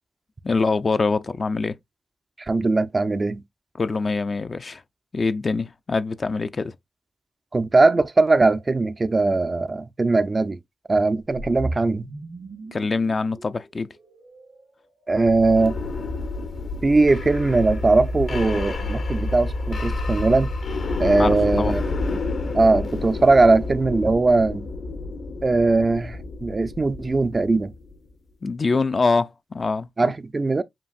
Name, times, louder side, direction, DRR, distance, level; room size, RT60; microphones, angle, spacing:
voice 1, 0.4-1.8 3.8-4.8 5.1-6.8 12.7-13.9 21.2-21.7 28.4-29.9, left 4 dB, 50° left, 0.4 m, -24 dB
voice 2, 2.4-3.4 7.5-10.6 10.9-12.1 15.1-15.7 16.8-20.5 21.0-21.8 22.5-24.7 25.4-27.7 30.0-30.6, right 3 dB, 40° right, 0.4 m, -20 dB
sound 1, 11.3-15.5, right 1 dB, 75° right, 1.8 m, -37 dB
sound 2, 15.2-27.9, left 2 dB, 70° left, 0.9 m, -29 dB
7.3 x 2.5 x 2.4 m
supercardioid pair, 40°, 0 cm